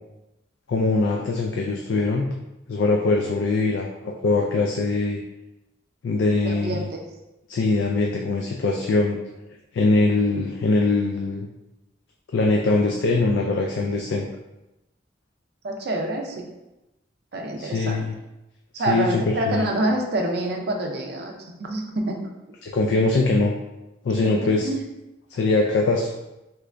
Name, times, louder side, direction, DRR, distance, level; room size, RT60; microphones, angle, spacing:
voice 1, 0.7-2.2 2.7-5.2 6.0-6.8 7.5-9.2 9.7-11.5 12.3-14.3 17.6-18.1 18.9-19.7 22.6-23.5 24.0-24.7 25.3-26.1, left 3 dB, 70° left, 1 dB, 0.3 m, -22 dB
voice 2, 6.4-7.0 15.6-16.5 17.3-18.0 18.7-22.3 24.2-24.8, right 1 dB, 55° right, 2 dB, 0.5 m, -27 dB
3.1 x 2.5 x 3.2 m, 0.96 s
head